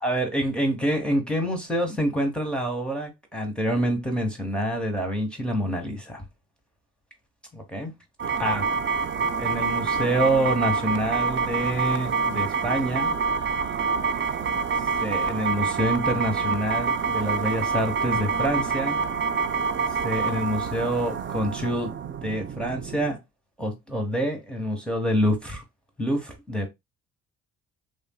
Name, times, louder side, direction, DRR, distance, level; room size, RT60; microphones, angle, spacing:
voice 1, 0.0-6.2 7.5-7.9 8.4-8.7 9.4-13.2 15.0-19.0 20.0-21.9 22.2-23.2 23.6-25.6 26.0-26.7, equal, 5° left, 0.9 m, -27 dB
sound 1, 8.2-23.1, right 5 dB, 40° right, 0.5 m, -27 dB
3.2 x 2.5 x 2.2 m
cardioid pair, 90°, 30 cm